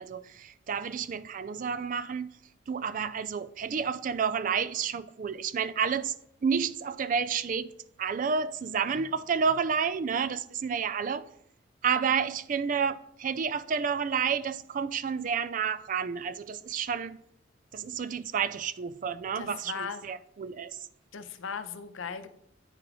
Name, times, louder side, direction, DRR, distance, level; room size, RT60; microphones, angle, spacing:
voice 1, 0.0-2.3 2.7-6.1 6.4-7.7 8.0-11.3 11.8-17.2 17.7-20.8, right 6 dB, 45° right, 0.3 m, -30 dB
voice 2, 19.4-20.0 21.1-22.3, left 6 dB, 90° left, 0.6 m, -37 dB
9.0 x 3.6 x 4.9 m
head